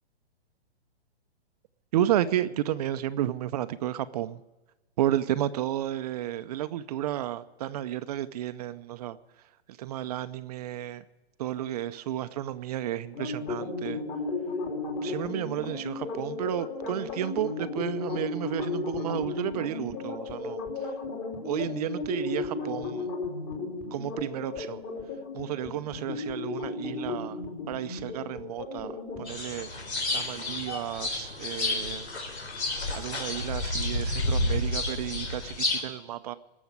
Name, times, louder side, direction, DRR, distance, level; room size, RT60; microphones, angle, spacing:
voice 1, 1.9-4.4 5.0-9.2 9.8-11.0 11.4-14.0 15.0-20.6 21.4-23.1 23.9-24.8 25.3-27.4 27.7-28.9 29.2-29.7 30.1-32.0 32.9-35.5 35.8-36.3, right 12 dB, 35° right, 0.6 m, -32 dB
sound 1, 13.1-29.3, left 3 dB, 30° left, 3.1 m, -34 dB
sound 2, 29.2-35.8, left 2 dB, 90° left, 4.0 m, -30 dB
19.5 x 7.2 x 9.6 m
hypercardioid pair, 145°, 32 cm